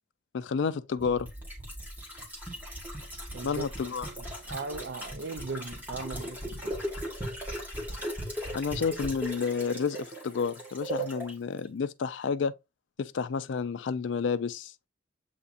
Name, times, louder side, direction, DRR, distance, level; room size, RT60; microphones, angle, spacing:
voice 1, 0.3-1.3 3.4-4.1 8.5-12.5 13.0-14.7, left 5 dB, 85° left, 0.4 m, -30 dB
sound 1, 1.0-11.3 11.6-11.7, equal, 10° right, 1.5 m, -38 dB
voice 2, 3.3-3.6 4.4-6.8, right 4 dB, 75° right, 0.5 m, -38 dB
7.8 x 2.8 x 2.4 m
head